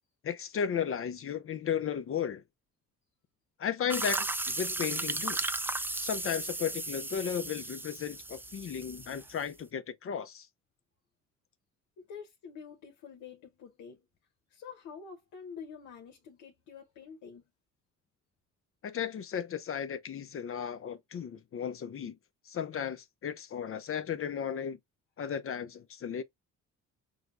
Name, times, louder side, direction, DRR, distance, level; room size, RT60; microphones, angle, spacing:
voice 1, 0.2-2.4 3.6-5.4 6.0-10.5 18.8-22.2 22.5-24.8 25.2-26.2, left 8 dB, 45° left, 0.6 m, -35 dB
sound 1, 3.9-9.5, right 2 dB, 5° right, 0.4 m, -35 dB
voice 2, 12.0-14.1 14.5-17.4, left 6 dB, 85° left, 1.0 m, -47 dB
6.2 x 2.2 x 2.5 m
cardioid pair, 90°, 30 cm